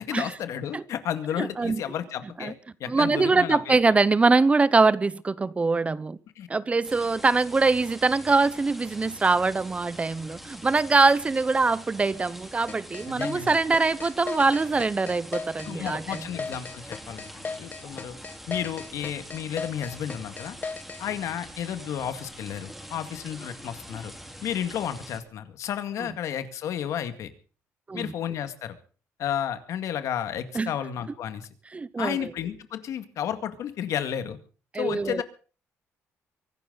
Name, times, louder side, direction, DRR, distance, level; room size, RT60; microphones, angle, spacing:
voice 1, 0.0-3.8 6.4-6.5 13.1-13.6 15.7-18.1 18.5-20.6 21.0-24.1 24.4-27.3 27.9-28.8 29.2-31.5 32.0-34.4 34.7-35.2, left 9 dB, 75° left, 2.0 m, -32 dB
voice 2, 1.4-1.8 2.4-2.5 2.9-6.2 6.5-16.3 27.9-28.1 30.5-30.7 31.7-32.3 34.7-35.2, right 3 dB, 25° right, 0.7 m, -23 dB
sound 1, 6.8-25.2, equal, ahead, 3.8 m, -44 dB
sound 2, 12.7-21.0, left 4 dB, 30° left, 1.1 m, -36 dB
24.0 x 12.0 x 4.0 m
cardioid pair, 105°, 5 cm